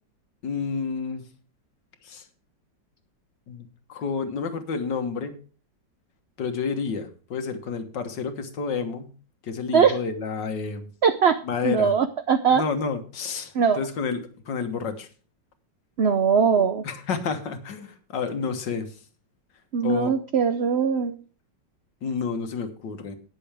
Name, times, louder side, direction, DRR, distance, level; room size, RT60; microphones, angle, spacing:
voice 1, 0.4-1.2 2.0-2.2 3.5-5.4 6.4-9.1 9.4-10.9 11.4-11.9 12.5-14.2 14.5-15.1 16.8-18.9 19.8-20.1 22.0-23.2, left 5 dB, 70° left, 7 dB, 2.0 m, -30 dB
voice 2, 11.0-11.4 11.6-12.6 13.5-13.8 16.0-16.8 19.7-21.2, right 6 dB, 75° right, 10 dB, 0.5 m, -21 dB
19.0 x 7.0 x 3.4 m, 0.37 s
omnidirectional pair, 2.0 m